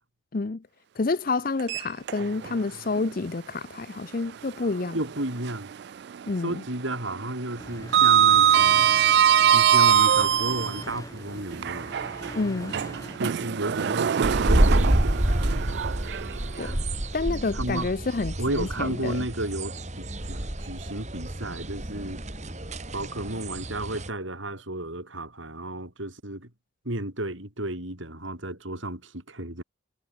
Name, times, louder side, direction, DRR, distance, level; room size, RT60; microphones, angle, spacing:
voice 1, 0.3-0.6 1.0-5.0 6.3-6.6 12.3-12.7 16.6-16.8 17.1-19.2, left 3 dB, 45° left, 0.6 m, -29 dB
Sliding door, 1.6-2.6 3.0-3.1 4.8-5.8 6.1-6.5 6.7-10.8 11.5-16.7, right 9 dB, 55° right, 0.3 m, -22 dB
voice 2, 4.9-5.7 6.4-8.9 9.5-12.0 13.2-15.6 17.5-17.9 18.4-22.2 22.9-26.5 26.8-29.6, right 1 dB, 75° right, 7.4 m, -33 dB
sound 1, 7.6-13.2, left 1 dB, 15° left, 4.0 m, -41 dB
sound 2, 14.2-24.1, right 1 dB, 35° right, 2.6 m, -28 dB
head